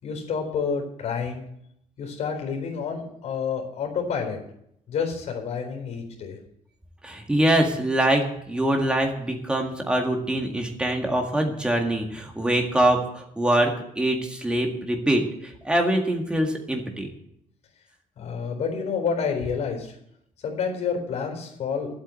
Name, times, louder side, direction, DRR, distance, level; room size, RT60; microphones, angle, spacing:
voice 1, 0.0-1.4 2.0-4.4 4.9-6.4 18.2-19.9 20.4-21.9, left 6 dB, 55° left, 2 dB, 4.3 m, -29 dB
voice 2, 7.0-17.1, right 1 dB, 5° right, 2 dB, 1.8 m, -24 dB
12.0 x 8.4 x 9.1 m, 0.74 s
cardioid pair, 180°, 14 cm